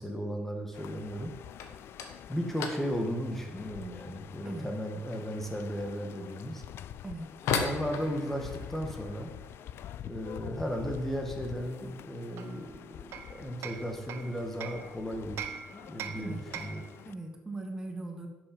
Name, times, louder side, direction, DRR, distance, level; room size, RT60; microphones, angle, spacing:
voice 1, 0.0-1.3 2.3-6.6 7.5-9.3 10.0-15.5 15.7-16.8, equal, 5° left, 3 dB, 1.6 m, -35 dB
sound 1, 0.7-17.1, left 10 dB, 55° left, 0.4 m, -47 dB
sound 2, 1.6-12.2 12.5-13.1 13.4-13.7 14.0-14.1 14.8-14.9 15.8-16.0 16.4-16.8, left 5 dB, 90° left, 1.4 m, -40 dB
Hammer, 12.4-14.9 15.4-16.9, right 8 dB, 70° right, 0.9 m, -42 dB
voice 2, 17.0-18.3, right 2 dB, 15° right, 3 dB, 1.5 m, -39 dB
11.0 x 7.6 x 5.3 m, 1.1 s
cardioid pair, 155°, 5 cm